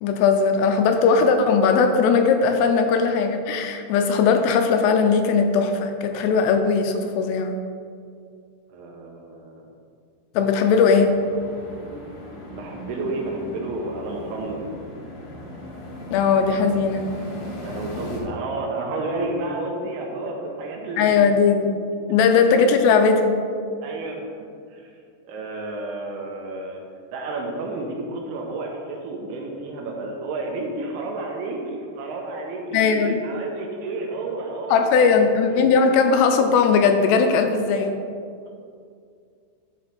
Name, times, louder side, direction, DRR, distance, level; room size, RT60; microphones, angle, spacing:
voice 1, 0.0-7.6 10.4-11.2 16.1-17.1 21.0-21.8 22.1-23.4 32.7-33.2 34.7-38.0, left 5 dB, 80° left, 6 dB, 2.6 m, -19 dB
voice 2, 8.7-9.6 10.7-10.8 12.5-14.8 17.6-21.2 22.1-22.2 22.4-22.6 23.8-25.0 25.2-26.8 27.1-35.7 37.6-37.7, right 2 dB, 75° right, 0 dB, 2.6 m, -31 dB
sound 1, 11.0-18.2, left 1 dB, 60° left, 1.7 m, -37 dB
11.0 x 5.1 x 4.2 m, 2.3 s
omnidirectional pair, 5.0 m